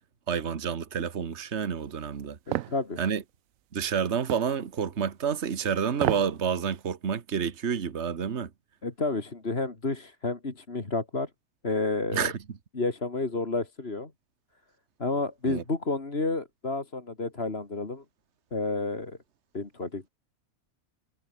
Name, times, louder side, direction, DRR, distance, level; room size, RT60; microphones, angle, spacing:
voice 1, 0.3-2.4 3.0-3.2 3.7-8.5 12.1-12.4 15.5-15.6, right 7 dB, 55° right, 1.6 m, -29 dB
sound 1, 2.5-2.8 4.3-4.5 5.9-6.3 6.7-6.8, right 14 dB, 75° right, 1.0 m, -29 dB
voice 2, 2.7-3.0 8.8-11.3 11.6-12.3 12.7-14.1 15.0-18.0 18.5-19.2 19.5-20.1, left 3 dB, 45° left, 3.0 m, -30 dB
omnidirectional pair, 1.4 m